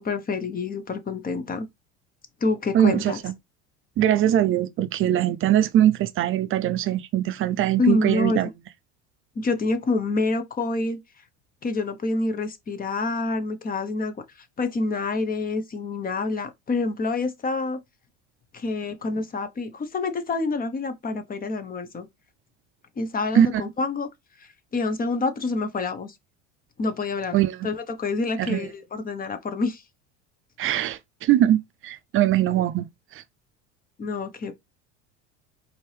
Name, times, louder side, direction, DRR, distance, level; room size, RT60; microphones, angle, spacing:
voice 1, 0.0-1.7 2.4-3.2 7.8-8.4 9.4-11.0 11.6-14.1 14.6-17.8 18.5-22.1 23.0-24.1 24.7-26.1 26.8-27.4 27.6-29.8 34.0-34.5, left 3 dB, 25° left, 0.9 m, -27 dB
voice 2, 2.7-3.3 4.0-8.5 23.3-23.5 27.3-27.7 28.4-28.7 30.6-32.9 33.1-33.2, right 11 dB, 35° right, 0.5 m, -21 dB
4.3 x 2.8 x 3.3 m
supercardioid pair, 90°, 35 cm